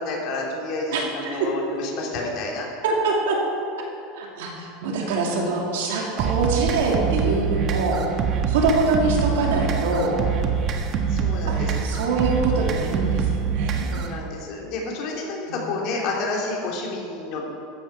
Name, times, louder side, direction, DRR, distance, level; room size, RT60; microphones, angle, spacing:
voice 1, 0.0-2.8 11.1-11.9 13.9-17.5, left 3 dB, 55° left, -2 dB, 3.1 m, -30 dB
voice 2, 0.9-1.5 2.8-3.4 4.2-8.0 8.5-10.1 11.5-13.9 15.5-15.6, right 3 dB, 80° right, -1 dB, 2.6 m, -24 dB
sound 1, 6.2-14.2, right 6 dB, 45° right, 1.3 m, -25 dB
14.0 x 9.4 x 4.7 m, 2.6 s
supercardioid pair, 120°, 0 cm